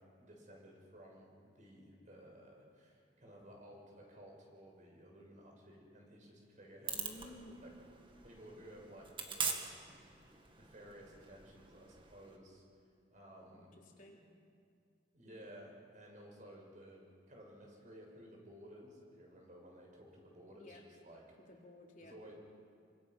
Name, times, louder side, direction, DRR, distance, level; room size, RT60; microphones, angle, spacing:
voice 1, 0.0-7.4 7.6-7.7 8.2-10.0 10.3-12.6 13.1-13.7 15.1-21.2 22.0-22.3, equal, 45° right, -1 dB, 6.6 m, -56 dB
sound 1, 6.8-12.4, right 5 dB, 30° right, 2.2 m, -44 dB
voice 2, 6.9-7.6 13.6-14.3 20.6-20.8 21.4-22.2, left 1 dB, 50° left, -1 dB, 3.6 m, -55 dB
27.0 x 25.5 x 6.2 m, 2.3 s
head